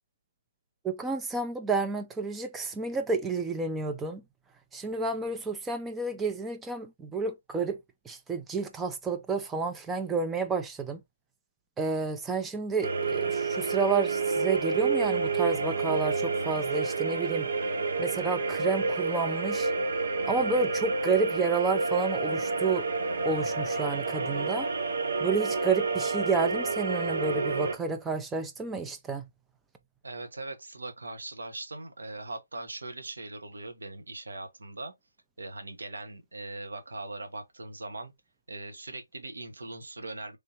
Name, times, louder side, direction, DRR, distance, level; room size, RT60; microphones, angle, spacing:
voice 1, 0.8-4.2 4.7-7.8 8.1-11.0 11.8-17.5 18.0-19.7 20.3-22.9 23.2-24.7 25.2-29.2, right 4 dB, 10° right, 0.4 m, -30 dB
sound 1, 12.8-27.7, right 4 dB, 60° right, 0.6 m, -29 dB
voice 2, 30.0-34.9 35.4-38.1 38.5-40.4, right 2 dB, 80° right, 1.1 m, -40 dB
3.4 x 2.7 x 2.8 m
hypercardioid pair, 150°, 0 cm